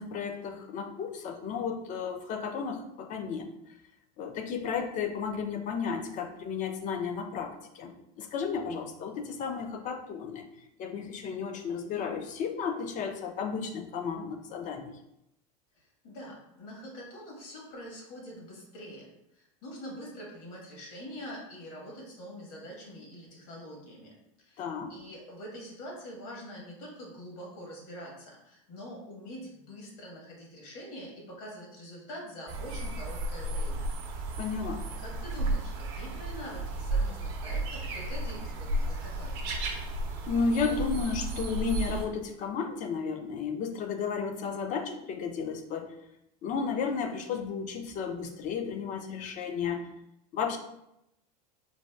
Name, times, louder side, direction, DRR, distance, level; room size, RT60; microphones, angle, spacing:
voice 1, 0.0-3.5 4.2-15.0 24.6-24.9 34.4-34.8 40.3-45.9 46.4-49.8 50.3-50.6, left 5 dB, 40° left, 6 dB, 0.5 m, -33 dB
voice 2, 15.7-24.6 24.9-33.9 35.0-39.4, equal, 65° left, -2 dB, 1.4 m, -45 dB
sound 1, 32.5-42.1, right 2 dB, 65° right, 0.7 m, -33 dB
4.0 x 2.2 x 2.3 m, 0.82 s
supercardioid pair, 105°, 20 cm